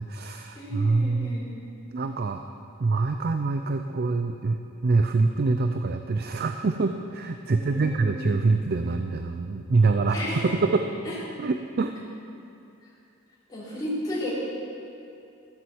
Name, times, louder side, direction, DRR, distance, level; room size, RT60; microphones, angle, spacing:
voice 1, 0.0-1.4 1.9-2.4 2.8-10.9 11.4-12.0, right 3 dB, 45° right, 7 dB, 0.5 m, -25 dB
voice 2, 0.5-1.5 7.5-8.3 10.1-10.6 11.0-11.1 13.5-14.3, left 1 dB, 20° left, -10 dB, 3.3 m, -33 dB
14.0 x 7.8 x 7.1 m, 2.6 s
head